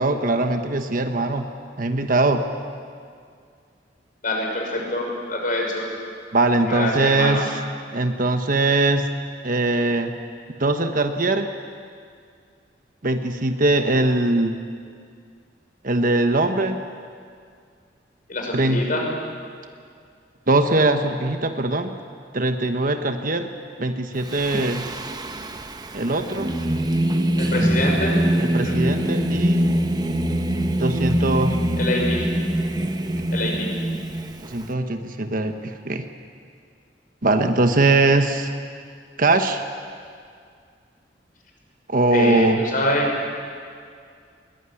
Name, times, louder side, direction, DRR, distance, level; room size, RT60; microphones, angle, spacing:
voice 1, 0.0-1.5 1.8-2.4 6.3-7.6 7.9-9.1 9.4-10.1 10.6-11.5 13.0-14.5 15.8-16.8 18.5-18.8 20.5-21.9 22.3-23.5 23.8-24.9 25.9-26.5 28.4-29.7 30.8-31.6 34.4-36.1 37.2-38.5 39.2-39.6 41.9-42.6, right 2 dB, 50° right, 6 dB, 1.2 m, -21 dB
voice 2, 4.2-5.8 6.6-7.4 18.3-19.1 27.4-28.2 28.6-28.8 31.8-32.3 33.3-33.7 42.1-43.4, left 1 dB, 50° left, 1 dB, 6.1 m, -25 dB
Singing, 24.2-34.7, right 1 dB, 25° right, 1.1 m, -23 dB
21.5 x 21.0 x 9.9 m, 2.2 s
head